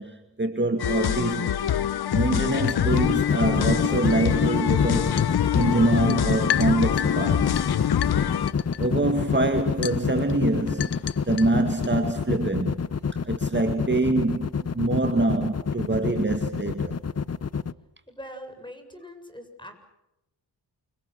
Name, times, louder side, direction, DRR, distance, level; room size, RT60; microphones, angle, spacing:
voice 1, 0.0-1.5 2.1-7.7 8.8-12.8 13.1-17.0, right 2 dB, 25° right, 2.2 m, -25 dB
sound 1, 0.8-8.5, left 10 dB, 65° left, 0.8 m, -25 dB
sound 2, 2.3-12.0, left 10 dB, 85° left, 0.9 m, -37 dB
sound 3, 2.9-17.7, left 6 dB, 40° left, 0.8 m, -26 dB
voice 2, 18.1-19.7, equal, 10° left, 7.3 m, -42 dB
29.0 x 25.5 x 6.4 m
cardioid pair, 70°, 41 cm